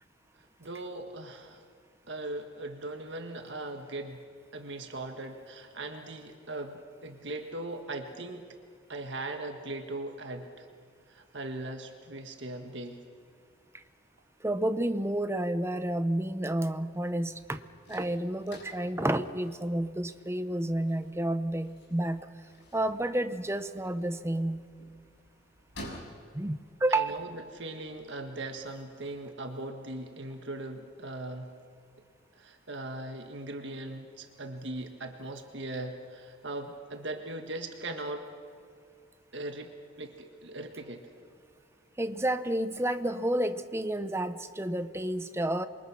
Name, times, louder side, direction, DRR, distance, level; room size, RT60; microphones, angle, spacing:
voice 1, 0.6-1.6 2.1-4.2 4.5-8.5 8.9-10.7 11.1-13.0 26.9-31.5 32.4-38.3 39.3-39.7 40.0-41.0, right 2 dB, 60° right, 5 dB, 1.6 m, -39 dB
voice 2, 14.4-17.6 17.9-22.3 22.7-24.7 26.3-27.2 42.0-45.7, right 1 dB, 15° right, 11 dB, 0.8 m, -30 dB
sound 1, 16.9-29.2, equal, 60° left, 6.1 m, -53 dB
28.0 x 23.5 x 6.1 m, 2.1 s
head